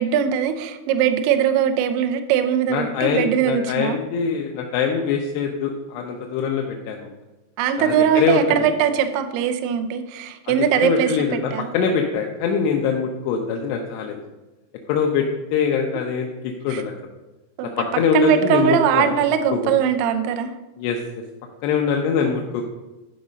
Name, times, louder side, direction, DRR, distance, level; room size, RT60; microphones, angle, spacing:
voice 1, 0.0-4.0 7.6-11.1 11.5-11.8 16.7-16.8 17.6-17.7 18.1-20.5, right 8 dB, 80° right, 8 dB, 2.5 m, -20 dB
voice 2, 2.7-7.1 7.8-8.7 10.5-14.2 14.9-16.3 16.6-16.9 17.8-19.2 19.5-19.7 20.8-21.0 21.6-22.6, left 6 dB, 80° left, 2 dB, 2.7 m, -23 dB
11.0 x 5.3 x 5.2 m, 1.1 s
omnidirectional pair, 5.3 m